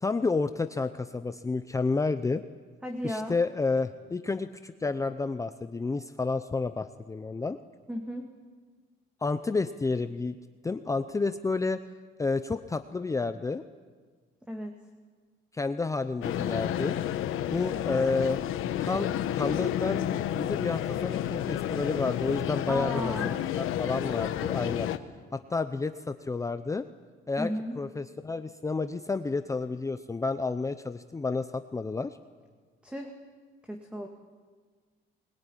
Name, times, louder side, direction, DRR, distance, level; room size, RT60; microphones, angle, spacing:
voice 1, 0.0-2.4 3.0-7.6 9.2-10.4 10.6-11.8 12.2-13.6 15.5-17.0 17.5-18.4 18.8-25.1 25.3-26.9 27.3-27.5 27.8-32.2, left 3 dB, 15° left, 10 dB, 0.7 m, -30 dB
voice 2, 2.8-3.4 7.9-8.2 14.5-14.8 22.7-23.6 27.4-27.8 32.8-33.1 33.7-34.1, equal, 5° right, 3 dB, 1.9 m, -34 dB
sound 1, 16.2-25.0, left 11 dB, 85° left, 1.2 m, -31 dB
21.5 x 21.5 x 10.0 m, 1.5 s
cardioid pair, 145°, 21 cm